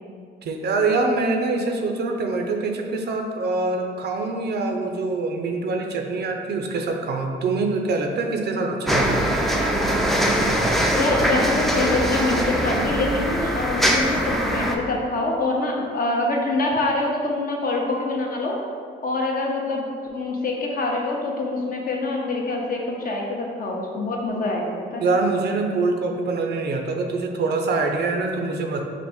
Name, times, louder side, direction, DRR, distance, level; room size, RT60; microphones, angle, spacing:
voice 1, 0.4-9.3 25.0-28.8, right 3 dB, 55° right, 3 dB, 0.5 m, -24 dB
sound 1, 8.9-14.7, equal, ahead, 0.4 m, -22 dB
voice 2, 10.9-18.6 19.0-19.9 20.1-25.0, left 2 dB, 45° left, -1 dB, 0.7 m, -25 dB
4.2 x 2.5 x 3.4 m, 2.2 s
cardioid pair, 90°, 20 cm